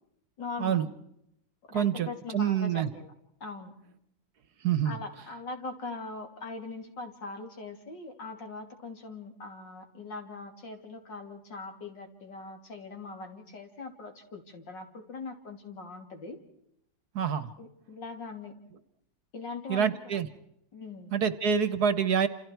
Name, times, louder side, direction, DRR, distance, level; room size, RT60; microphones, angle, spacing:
voice 1, 0.4-0.9 1.7-3.1 3.4-3.7 4.8-16.4 17.6-18.5 19.3-20.2 20.7-21.2, left 3 dB, 70° left, 4 dB, 3.6 m, -41 dB
voice 2, 1.7-2.1 2.3-2.9 4.6-4.9 17.1-17.5 19.7-20.3 21.1-22.3, right 8 dB, 60° right, 14 dB, 1.5 m, -26 dB
28.5 x 28.0 x 4.6 m, 0.78 s
omnidirectional pair, 2.1 m